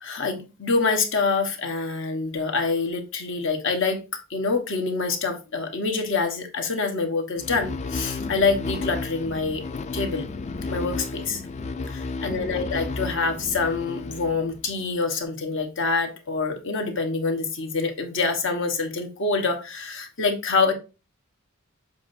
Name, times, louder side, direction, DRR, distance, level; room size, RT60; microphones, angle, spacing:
voice 1, 0.0-9.6 9.9-10.3 10.7-11.4 11.9-20.7, left 4 dB, 60° left, 1.2 m, -26 dB
sound 1, 7.4-14.8, left 3 dB, 30° left, 0.4 m, -33 dB
7.2 x 4.9 x 2.6 m
head